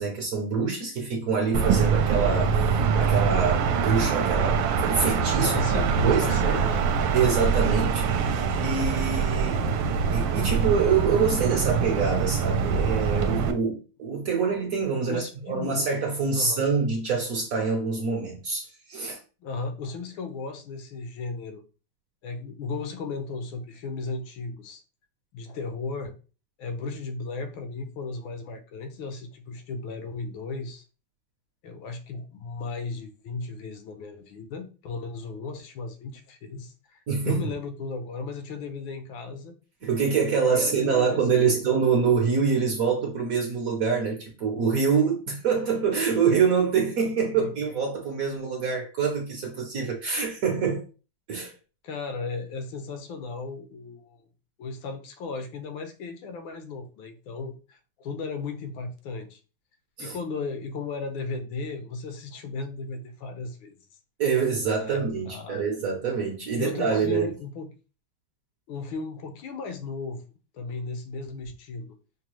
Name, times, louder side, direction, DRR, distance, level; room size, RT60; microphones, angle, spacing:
voice 1, 0.0-2.5 3.0-6.6 7.1-9.7 10.1-19.2 37.1-37.4 39.8-50.8 51.3-51.5 60.0-60.2 64.2-67.3, right 5 dB, 60° right, 1.0 m, -25 dB
sound 1, 1.5-13.5, right 6 dB, 75° right, 1.3 m, -24 dB
voice 2, 5.4-6.9 15.1-15.9 16.3-16.6 19.4-21.6 22.2-24.8 25.3-26.1 26.6-30.8 31.6-39.5 40.1-40.2 40.5-41.6 47.3-47.5 51.8-54.3 54.6-59.4 60.0-63.8 64.7-65.7 66.6-67.7 68.7-70.2 70.5-71.9, left 4 dB, 80° left, 1.5 m, -35 dB
5.4 x 2.2 x 3.0 m
omnidirectional pair, 2.2 m